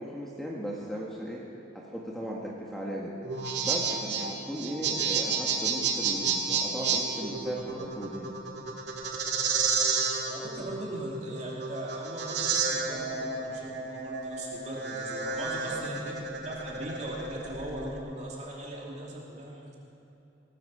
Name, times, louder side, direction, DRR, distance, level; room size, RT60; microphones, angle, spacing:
voice 1, 0.0-1.4 1.7-3.2 3.6-8.4 15.2-15.9, equal, ahead, -4 dB, 1.7 m, -37 dB
sound 1, 3.2-18.0, right 5 dB, 65° right, 2.1 m, -31 dB
voice 2, 10.3-19.7, right 1 dB, 40° right, -3 dB, 2.9 m, -39 dB
19.0 x 13.5 x 5.0 m, 3.0 s
head